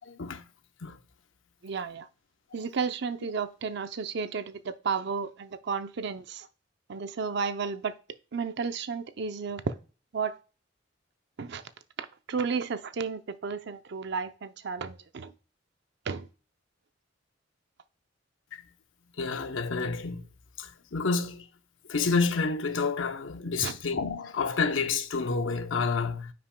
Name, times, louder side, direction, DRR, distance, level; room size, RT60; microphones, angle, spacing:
voice 1, 0.0-0.4 0.8-1.0 18.5-18.6 19.2-20.2 20.6-21.4 21.9-26.3, left 4 dB, 80° left, 0.8 m, -29 dB
voice 2, 1.6-2.1 2.5-6.5 6.9-8.0 8.3-9.7 10.1-10.4 11.4-11.6 12.0-15.3 16.1-16.3 23.6-23.7, right 5 dB, 60° right, 0.6 m, -33 dB
9.6 x 5.8 x 2.2 m
head